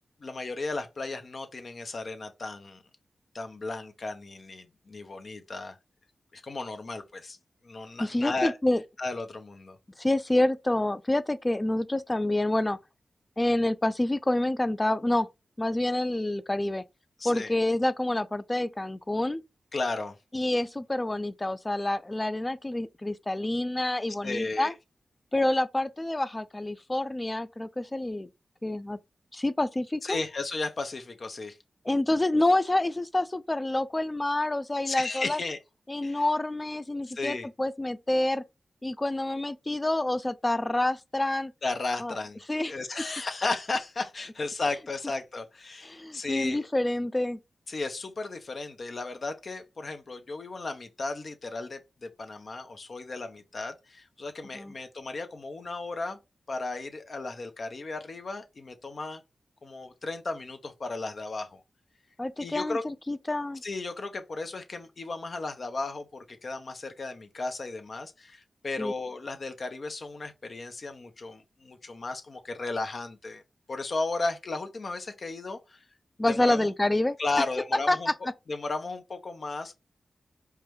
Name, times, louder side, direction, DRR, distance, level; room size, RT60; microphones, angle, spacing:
voice 1, 0.2-2.8 3.3-5.8 6.3-7.4 7.6-8.5 9.0-9.8 17.2-17.5 19.7-20.2 24.2-24.7 30.0-31.6 34.9-35.6 36.0-36.2 37.1-37.5 41.6-42.4 42.7-46.6 47.7-56.2 56.5-59.2 59.6-61.6 62.4-62.8 63.6-73.4 73.7-75.8 76.3-76.7 77.2-78.1 78.5-79.7, left 3 dB, 60° left, 0.7 m, -34 dB
voice 2, 8.0-8.8 10.0-12.8 13.4-15.3 15.6-16.8 17.2-19.4 20.3-24.7 25.3-28.3 28.6-29.0 29.3-30.2 31.9-35.4 35.9-38.4 38.8-41.5 42.0-42.1 42.5-42.7 45.9-47.4 54.5-54.7 62.2-63.6 68.8-68.9 76.2-77.2 77.9-78.1, left 1 dB, 25° left, 0.4 m, -27 dB
4.7 x 2.2 x 3.2 m
cardioid pair, 45°, 0 cm